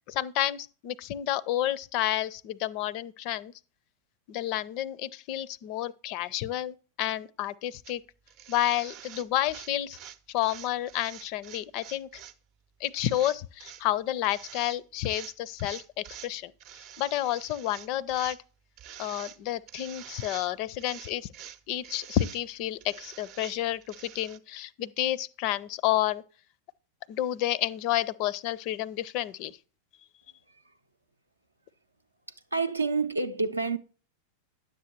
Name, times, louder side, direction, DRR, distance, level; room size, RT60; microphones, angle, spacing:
voice 1, 0.1-3.5 4.3-8.0 8.5-10.0 10.3-12.2 12.8-16.5 17.0-18.4 19.0-21.3 21.7-26.2 27.1-29.5, left 13 dB, 45° left, 0.4 m, -30 dB
sound 1, 7.8-7.9 8.3-12.4 12.8-13.8 14.2-14.8 15.0-16.3 16.6-18.4 18.8-19.4 19.7-20.5 20.8-22.4 22.8-24.4, right 10 dB, 40° right, 0.5 m, -47 dB
voice 2, 32.5-33.8, right 4 dB, 80° right, 0.6 m, -28 dB
10.0 x 7.4 x 2.9 m
figure-of-eight pair, 90°, 0 cm